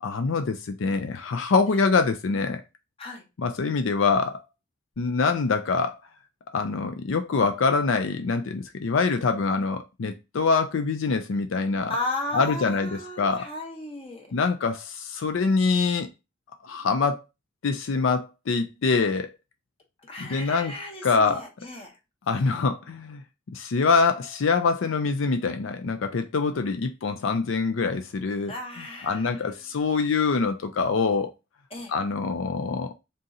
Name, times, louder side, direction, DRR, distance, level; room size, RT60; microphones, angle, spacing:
voice 1, 0.0-2.6 3.4-4.4 5.0-6.0 6.5-12.0 12.3-13.5 14.3-16.1 16.6-17.2 17.6-19.3 20.2-20.7 21.0-21.4 22.3-23.2 23.5-28.5 29.0-31.3 31.9-32.9, left 4 dB, 80° left, 0.5 m, -24 dB
voice 2, 11.9-14.3 20.0-22.0 28.5-29.5 31.7-31.9, left 2 dB, 30° left, 1.1 m, -35 dB
3.7 x 2.8 x 3.9 m
head